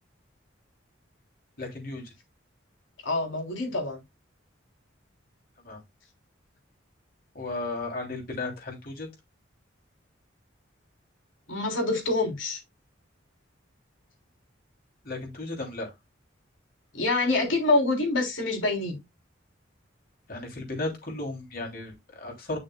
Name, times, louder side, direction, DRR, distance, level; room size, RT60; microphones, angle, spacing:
voice 1, 1.6-2.0 5.6-5.8 7.3-9.1 15.0-15.9 20.3-22.6, left 2 dB, 50° left, 3.1 m, -34 dB
voice 2, 3.0-4.0 11.5-12.6 16.9-19.0, left 2 dB, 85° left, 3.5 m, -26 dB
9.6 x 6.2 x 2.2 m
head